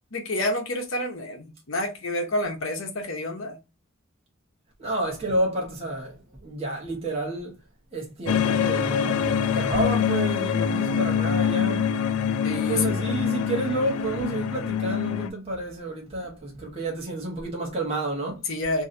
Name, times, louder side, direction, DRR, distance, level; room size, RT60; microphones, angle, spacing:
voice 1, 0.1-3.6 12.4-13.1 18.5-18.8, left 1 dB, 65° left, 0.9 m, -29 dB
voice 2, 4.8-6.1 6.4-7.5 7.9-11.9 12.5-18.4, right 2 dB, 25° right, 0.9 m, -30 dB
sound 1, 8.3-15.3, left 7 dB, 80° left, 0.4 m, -25 dB
3.0 x 2.7 x 2.5 m
head